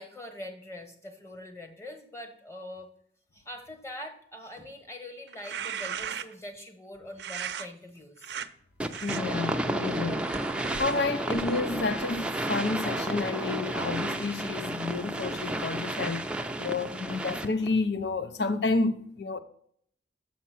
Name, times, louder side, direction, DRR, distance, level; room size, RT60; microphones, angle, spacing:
voice 1, 0.0-2.9 3.3-8.4, left 1 dB, 15° left, 1.2 m, -43 dB
sound 1, 5.3-6.5 7.2-7.7 8.2-8.5 8.9-9.2 9.8-12.4, right 7 dB, 65° right, 0.5 m, -38 dB
sound 2, 8.8-17.7, right 1 dB, 5° right, 0.4 m, -32 dB
voice 2, 9.0-10.3 10.8-16.3 16.6-19.4, left 3 dB, 65° left, 0.7 m, -30 dB
7.3 x 5.9 x 5.9 m
head